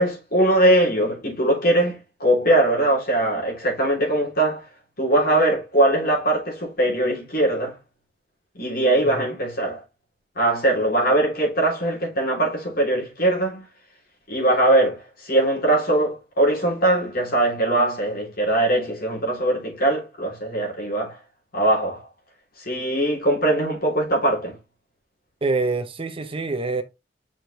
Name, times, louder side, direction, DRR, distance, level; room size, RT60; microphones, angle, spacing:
voice 1, 0.0-4.6 5.0-7.8 8.5-9.8 10.3-13.6 14.3-21.1 21.5-22.0 22.6-24.5, right 1 dB, 55° left, 3.4 m, -21 dB
voice 2, 25.4-26.8, right 3 dB, 30° right, 0.7 m, -25 dB
6.0 x 5.0 x 3.3 m
head